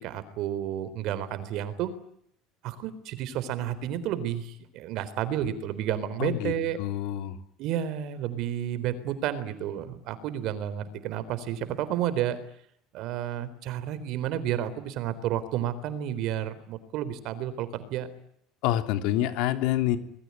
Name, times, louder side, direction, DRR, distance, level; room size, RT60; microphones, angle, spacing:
voice 1, 0.0-1.9 2.6-6.8 7.6-12.4 12.9-18.1, right 10 dB, 55° right, 14 dB, 3.9 m, -31 dB
voice 2, 6.2-6.5 6.8-7.4 18.6-20.0, left 13 dB, 65° left, 8 dB, 3.3 m, -27 dB
26.0 x 22.0 x 9.8 m, 0.70 s
cardioid pair, 155°, 0 cm